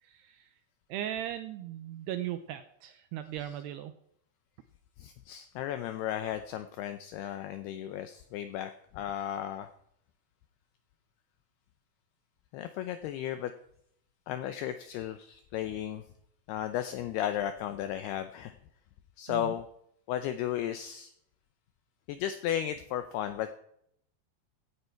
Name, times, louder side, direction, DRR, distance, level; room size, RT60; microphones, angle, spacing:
voice 1, 0.0-0.5 0.9-3.9 19.3-19.5, right 11 dB, 80° right, 9 dB, 2.4 m, -38 dB
voice 2, 5.0-9.7 12.5-13.5 14.3-16.0 16.5-18.5 19.2-19.7 20.1-21.1 22.1-23.5, left 11 dB, 85° left, 9 dB, 2.3 m, -34 dB
16.0 x 9.8 x 4.5 m, 0.71 s
omnidirectional pair, 5.4 m